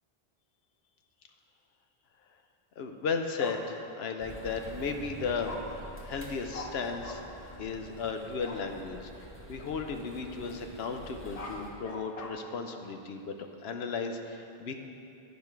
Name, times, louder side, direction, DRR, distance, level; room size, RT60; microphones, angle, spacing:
voice 1, 2.8-7.2 7.6-9.1 9.5-13.3 13.6-14.7, left 5 dB, 85° left, 5 dB, 0.9 m, -35 dB
Bark, 3.4-3.6 5.4-5.6 6.5-6.7 7.0-7.2 8.4-8.6 11.1-12.3, left 3 dB, 45° left, 0.7 m, -41 dB
sound 1, 4.2-11.7, right 1 dB, 15° left, 0.9 m, -47 dB
9.7 x 5.1 x 4.6 m, 2.7 s
omnidirectional pair, 1.0 m